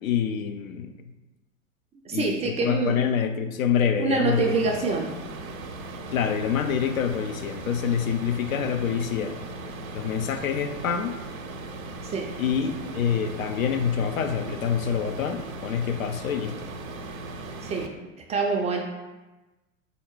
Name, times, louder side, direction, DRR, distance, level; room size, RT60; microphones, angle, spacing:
voice 1, 0.0-0.9 2.1-4.6 4.9-5.0 6.1-9.4 9.9-11.2 12.4-16.6, left 8 dB, 80° left, 7 dB, 0.6 m, -26 dB
voice 2, 2.1-3.0 4.0-5.1 12.0-12.3 17.6-17.9 18.3-18.8, right 4 dB, 20° right, 1 dB, 0.3 m, -25 dB
sound 1, 4.3-17.9, right 2 dB, 85° right, 0.6 m, -38 dB
4.0 x 2.8 x 4.4 m, 1.1 s
hypercardioid pair, 90°, 40 cm